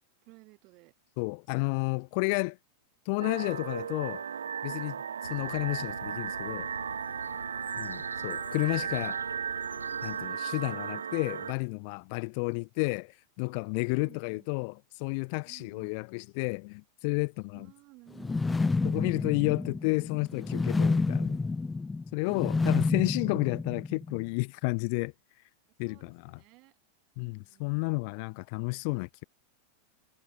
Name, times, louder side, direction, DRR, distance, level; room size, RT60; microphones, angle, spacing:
voice 1, 0.2-0.9 12.4-12.7 14.0-14.7 15.5-15.9 17.5-19.7 22.2-23.2 25.8-26.8 27.2-28.1 28.6-28.7, right 24 dB, 40° right, 7.6 m, -56 dB
voice 2, 1.2-2.6 3.1-4.2 4.6-6.7 7.8-8.0 8.2-9.2 10.0-14.7 15.0-17.7 18.9-21.4 22.1-25.1 25.8-26.4 27.2-29.2, left 34 dB, 45° left, 0.8 m, -31 dB
sound 1, 3.2-11.5, right 7 dB, 70° right, 1.0 m, -35 dB
sound 2, 5.2-10.3, left 2 dB, 80° left, 1.2 m, -47 dB
sound 3, 18.2-24.2, left 3 dB, 10° left, 0.3 m, -29 dB
figure-of-eight pair, 90°, 0 cm